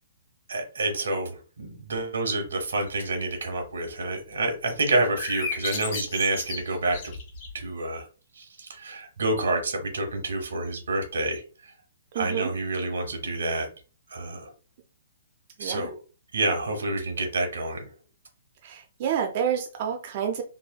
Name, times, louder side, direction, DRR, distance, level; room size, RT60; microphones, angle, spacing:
voice 1, 0.5-7.1 7.5-8.0 8.4-11.4 12.1-13.7 14.1-14.5 15.6-16.0 16.3-17.9, right 2 dB, 90° right, 4 dB, 1.0 m, -28 dB
sound 1, 4.9-7.6, left 5 dB, 40° left, 0.8 m, -35 dB
voice 2, 12.1-12.5 15.6-15.9 18.6-20.4, right 8 dB, 40° right, 2 dB, 0.4 m, -29 dB
3.2 x 2.1 x 2.3 m, 0.36 s
hypercardioid pair, 155°, 0 cm